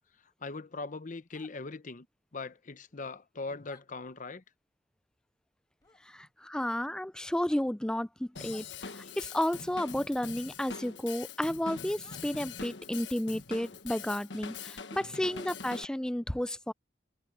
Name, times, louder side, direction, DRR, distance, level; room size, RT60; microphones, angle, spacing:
voice 1, 0.4-2.1 2.3-4.4, left 3 dB, 45° left, 0.8 m, -40 dB
sound 1, 1.3-1.5 3.6-3.8 5.8-6.0 7.3-7.7 8.4-8.7 10.8-10.9 12.0-12.2, left 3 dB, 20° left, 1.5 m, -59 dB
voice 2, 6.1-8.9 9.2-16.7, left 1 dB, 5° left, 0.4 m, -32 dB
Drum kit / Drum, 8.4-15.9, left 5 dB, 70° left, 1.4 m, -43 dB
head